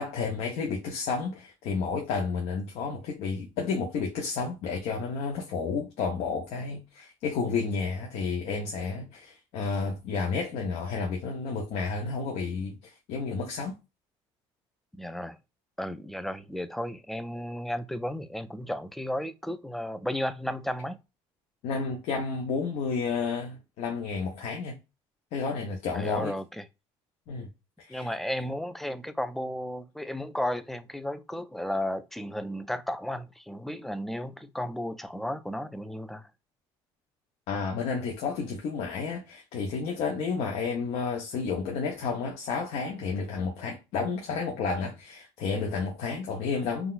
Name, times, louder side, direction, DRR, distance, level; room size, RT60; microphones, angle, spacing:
voice 1, 0.0-13.8 21.6-24.8 25.3-26.3 27.3-27.5 27.8-28.1 37.5-46.9, left 5 dB, 70° left, 0.8 m, -31 dB
voice 2, 14.9-15.4 15.8-21.0 25.9-26.6 27.9-36.3, left 1 dB, ahead, 0.3 m, -34 dB
3.8 x 2.2 x 2.4 m
cardioid pair, 110°, 11 cm